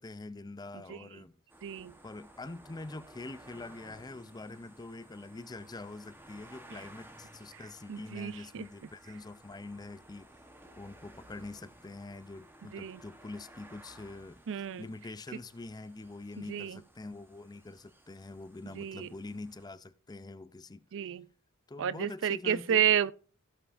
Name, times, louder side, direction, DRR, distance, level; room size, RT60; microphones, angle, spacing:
voice 1, 0.0-1.3 2.0-10.3 10.8-14.4 14.8-20.9 21.7-22.8, left 2 dB, 20° left, 0.5 m, -45 dB
sound 1, 1.5-19.7, right 1 dB, 10° right, 1.0 m, -56 dB
voice 2, 1.6-1.9 7.5-7.6 7.9-8.6 12.7-13.0 14.5-14.9 16.5-16.8 18.8-19.1 20.9-21.3 21.8-23.1, right 9 dB, 60° right, 0.4 m, -31 dB
16.5 x 5.7 x 2.5 m
head